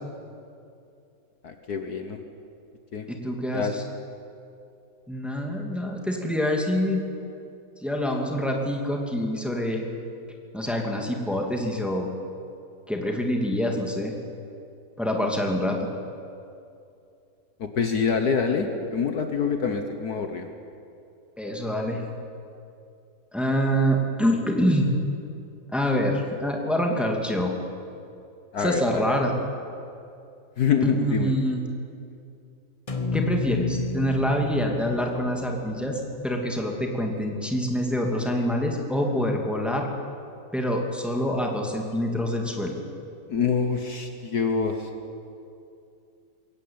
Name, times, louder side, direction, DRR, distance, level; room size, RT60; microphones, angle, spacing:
voice 1, 1.4-2.2 2.9-3.0 3.5-3.7 17.6-20.5 28.5-29.1 30.6-31.3 43.3-44.9, left 6 dB, 60° left, 6 dB, 1.6 m, -26 dB
voice 2, 3.1-3.8 5.1-7.0 7.8-9.8 10.5-12.1 12.9-14.1 15.0-15.8 21.4-22.0 23.3-24.9 25.7-27.5 28.6-29.3 30.8-31.6 33.1-39.9 40.5-42.8, equal, ahead, 1 dB, 2.4 m, -26 dB
sound 1, 32.9-37.1, left 4 dB, 20° left, 1.1 m, -31 dB
22.0 x 17.5 x 8.8 m, 2.6 s
omnidirectional pair, 2.0 m